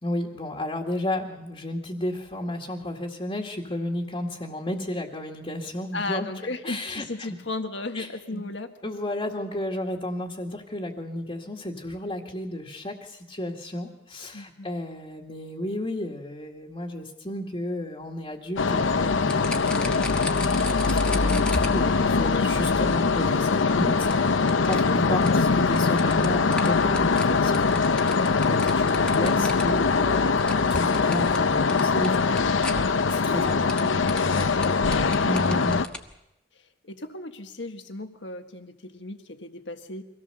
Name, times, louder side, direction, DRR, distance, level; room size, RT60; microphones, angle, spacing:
voice 1, 0.0-6.3 6.6-7.4 7.9-8.4 8.8-23.9 24.2-32.5 32.8-33.9 35.2-35.8, left 1 dB, 30° left, -2 dB, 2.0 m, -33 dB
voice 2, 5.9-8.7 14.3-14.7 23.5-23.9 33.5-35.3 36.8-40.0, left 2 dB, 65° left, 6 dB, 1.6 m, -35 dB
sound 1, 18.6-35.9, left 4 dB, 85° left, 0.7 m, -22 dB
sound 2, 19.3-36.1, left 1 dB, 5° left, 1.3 m, -39 dB
24.0 x 17.5 x 6.8 m, 0.89 s
head